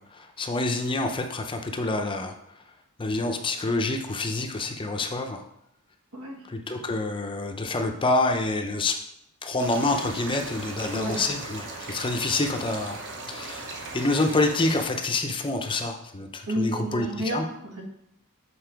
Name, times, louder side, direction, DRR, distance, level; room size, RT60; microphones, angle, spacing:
voice 1, 0.0-2.3 3.0-5.4 6.5-9.0 9.4-13.0 13.3-13.6 13.9-17.4, left 2 dB, 20° left, 4 dB, 0.5 m, -27 dB
voice 2, 6.1-6.4 10.9-11.2 16.5-17.8, equal, 75° right, 0 dB, 1.6 m, -31 dB
sound 1, 9.6-14.9, right 2 dB, 55° right, 1.0 m, -38 dB
6.9 x 4.3 x 4.5 m, 0.76 s
head